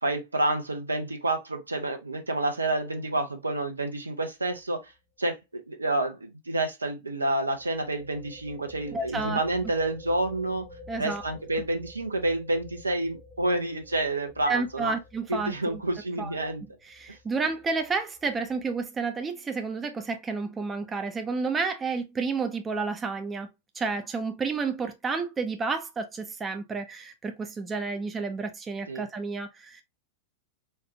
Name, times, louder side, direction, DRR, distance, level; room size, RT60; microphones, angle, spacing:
voice 1, 0.0-4.9 5.2-10.6 11.0-14.9 15.3-16.6 28.9-29.0, right 2 dB, 80° right, 0.8 m, -29 dB
sound 1, 4.4-4.7 4.9-5.0 7.5-18.9, left 2 dB, 55° left, 1.7 m, -50 dB
voice 2, 8.9-9.4 10.9-11.3 14.5-15.8 16.2-16.4 16.8-23.5 23.7-29.8, right 4 dB, 20° right, 0.6 m, -31 dB
4.4 x 2.4 x 2.7 m
figure-of-eight pair, 90°, 0 cm